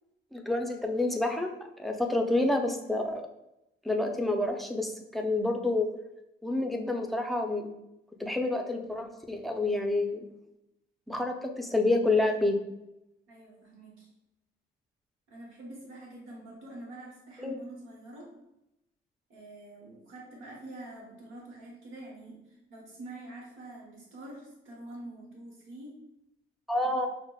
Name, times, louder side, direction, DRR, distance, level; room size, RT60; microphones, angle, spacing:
voice 1, 0.3-1.5 1.8-3.2 3.8-5.9 6.4-7.7 8.2-10.2 11.1-12.6 17.4-17.5 26.7-27.1, left 2 dB, ahead, 3 dB, 0.5 m, -28 dB
voice 2, 13.3-14.1 15.3-18.3 19.3-25.9 26.8-26.9, right 1 dB, 90° right, -3 dB, 1.0 m, -46 dB
5.9 x 2.1 x 2.2 m, 0.87 s
cardioid pair, 90°, 20 cm